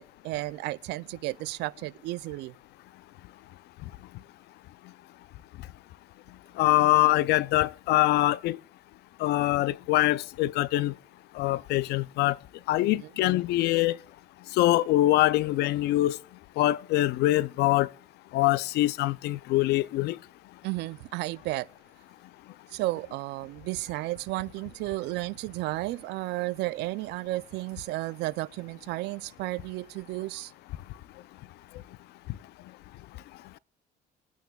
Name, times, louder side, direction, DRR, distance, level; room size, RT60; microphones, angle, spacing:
voice 1, 0.0-2.5 12.8-13.1 20.6-21.7 22.7-30.5, right 19 dB, 85° right, 0.4 m, -33 dB
voice 2, 6.6-8.6 9.2-10.9 11.4-12.4 12.7-14.0 14.6-16.2 16.6-17.9 18.3-20.2, left 16 dB, 75° left, 0.4 m, -24 dB
22.0 x 9.2 x 2.3 m
cardioid pair, 110°, 17 cm